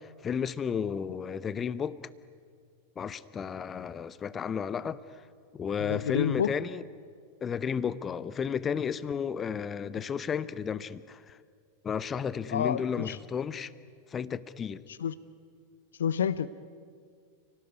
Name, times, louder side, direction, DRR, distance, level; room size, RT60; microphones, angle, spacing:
voice 1, 0.0-2.0 3.0-5.2 5.5-6.8 7.4-11.4 11.8-13.7 14.1-14.8, left 7 dB, 20° left, 0.8 m, -33 dB
voice 2, 5.8-6.5 12.5-13.2 15.0-15.2 16.0-16.5, left 8 dB, 65° left, 0.7 m, -29 dB
29.5 x 18.0 x 9.6 m
figure-of-eight pair, 90°, 0 cm